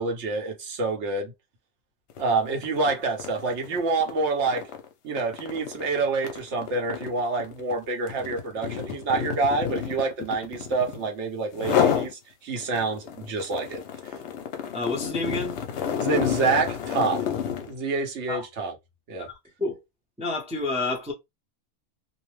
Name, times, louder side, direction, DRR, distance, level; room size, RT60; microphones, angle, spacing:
voice 1, 0.0-1.3 2.2-4.7 5.0-13.8 16.0-17.3 17.7-18.7 19.1-19.3, right 3 dB, 65° right, 1.0 m, -27 dB
sound 1, 2.1-2.3 2.6-11.1 11.5-12.1 12.6-17.7, left 8 dB, 65° left, 0.8 m, -30 dB
voice 2, 14.7-15.6 18.3-18.5 19.2-19.8 20.2-21.1, left 3 dB, 10° right, 0.5 m, -29 dB
2.6 x 2.1 x 3.0 m
omnidirectional pair, 1.4 m